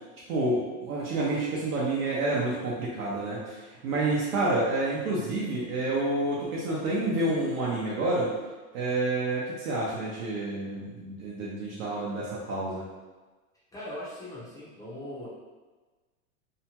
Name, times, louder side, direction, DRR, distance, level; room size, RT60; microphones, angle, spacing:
voice 1, 0.3-8.3 8.7-12.9, right 2 dB, 85° right, -6 dB, 0.8 m, -29 dB
voice 2, 13.7-15.3, left 1 dB, 10° left, -9 dB, 0.5 m, -40 dB
2.8 x 2.2 x 2.8 m, 1.3 s
supercardioid pair, 140°, 41 cm